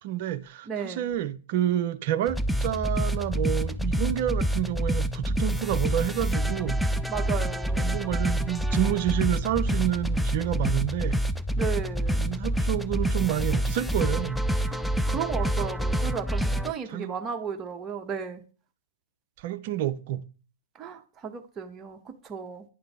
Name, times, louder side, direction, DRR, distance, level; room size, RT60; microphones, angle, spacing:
voice 1, 0.0-6.8 7.7-11.2 12.2-14.4 16.9-17.1 19.4-20.3, right 12 dB, 45° right, 0.5 m, -29 dB
voice 2, 0.7-1.1 7.1-8.0 11.6-12.2 14.7-18.4 20.7-22.6, right 7 dB, 20° right, 0.9 m, -34 dB
sound 1, 2.3-16.7, equal, ahead, 0.3 m, -27 dB
9.9 x 3.8 x 3.5 m
figure-of-eight pair, 110°, 0 cm